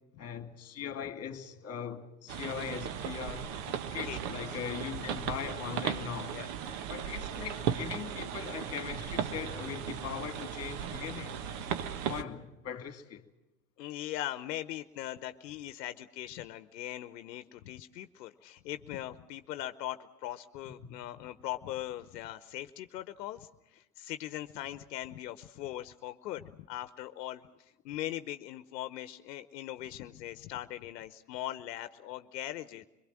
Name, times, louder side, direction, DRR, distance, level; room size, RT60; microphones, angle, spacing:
voice 1, 0.2-3.5 3.9-6.4 6.9-11.4 12.1-13.2 20.8-21.0, left 8 dB, 30° left, 2.2 m, -40 dB
sound 1, 2.3-12.2, right 8 dB, 60° right, 1.5 m, -36 dB
voice 2, 13.8-32.8, left 13 dB, 75° left, 0.9 m, -40 dB
23.0 x 22.0 x 7.6 m
hypercardioid pair, 100°, 49 cm